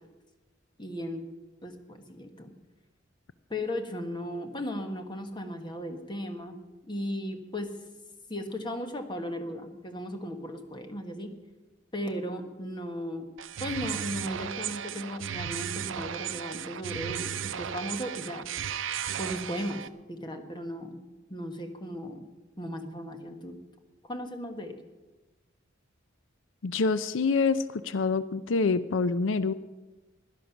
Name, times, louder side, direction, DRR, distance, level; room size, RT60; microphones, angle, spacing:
voice 1, 0.8-1.3 1.6-2.5 3.5-6.6 6.9-7.7 8.3-11.3 11.9-13.2 13.6-18.4 19.2-21.0 21.3-22.3 22.6-23.6 24.0-24.8, equal, 25° left, 6 dB, 1.4 m, -36 dB
sound 1, 13.4-19.9, right 9 dB, 85° right, 0.6 m, -35 dB
voice 2, 26.6-29.5, left 4 dB, 85° left, 14 dB, 0.5 m, -26 dB
16.5 x 11.5 x 6.0 m, 1.2 s
head